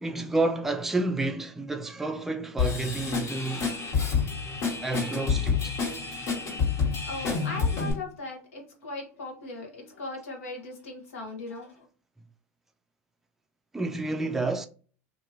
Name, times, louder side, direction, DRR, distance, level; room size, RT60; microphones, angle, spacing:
voice 1, 0.0-3.8 4.8-5.7 6.4-6.5 13.7-14.7, right 2 dB, 5° right, 0.3 m, -30 dB
Drum kit / Drum, 2.6-7.9, left 5 dB, 65° left, 1.6 m, -28 dB
voice 2, 7.0-11.7, left 2 dB, 85° left, 1.0 m, -38 dB
2.8 x 2.6 x 2.6 m
hypercardioid pair, 95°, 7 cm